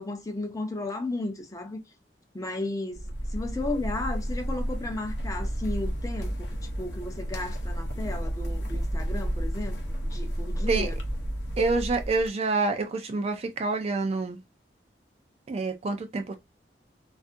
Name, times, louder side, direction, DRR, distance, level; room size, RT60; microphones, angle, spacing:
voice 1, 0.0-1.8 2.3-6.3 6.6-9.8 10.1-10.9, left 2 dB, 20° left, 0.5 m, -34 dB
sound 1, 2.9-12.3, equal, 85° left, 0.6 m, -31 dB
voice 2, 11.6-14.4 15.5-16.3, right 3 dB, 35° right, 0.3 m, -27 dB
2.6 x 2.4 x 2.4 m
head